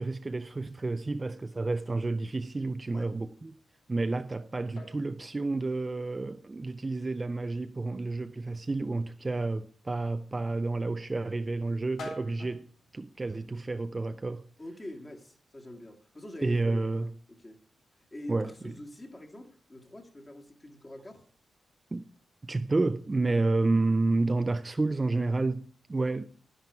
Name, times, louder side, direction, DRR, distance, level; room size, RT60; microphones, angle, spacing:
voice 1, 0.0-3.5 3.9-12.7 12.9-14.4 16.4-17.1 18.3-18.7 21.9-22.1 22.4-26.2, right 3 dB, 20° right, 0.4 m, -30 dB
sound 1, 3.4-14.1, left 1 dB, 90° left, 4.4 m, -53 dB
voice 2, 14.6-17.1 17.4-17.6 18.1-21.2, left 1 dB, 20° left, 1.9 m, -44 dB
11.0 x 10.5 x 4.6 m
wide cardioid pair, 145°, 0 cm